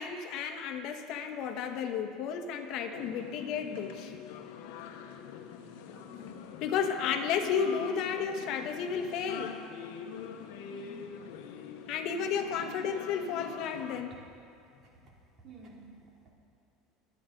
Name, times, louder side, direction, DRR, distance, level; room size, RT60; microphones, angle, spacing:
voice 1, 0.0-4.1 6.6-9.5 11.9-14.2, left 7 dB, 55° left, 5 dB, 1.3 m, -32 dB
sound 1, 2.9-14.0, left 7 dB, 80° left, 1.0 m, -45 dB
voice 2, 5.9-6.4 10.7-11.2 14.8-16.3, right 2 dB, 35° right, -2 dB, 2.7 m, -53 dB
24.0 x 8.7 x 3.9 m, 2.5 s
cardioid pair, 140°, 0 cm